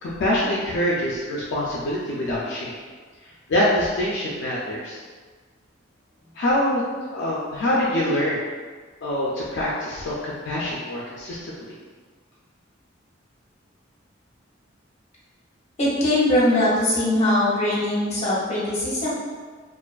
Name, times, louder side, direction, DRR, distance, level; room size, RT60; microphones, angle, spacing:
voice 1, 0.0-2.8 3.5-5.0 6.4-6.8 7.1-8.4 9.0-11.5, left 1 dB, 65° left, -6 dB, 0.4 m, -24 dB
voice 2, 15.8-19.1, left 1 dB, 35° left, -7 dB, 0.7 m, -21 dB
2.4 x 2.3 x 2.3 m, 1.5 s
head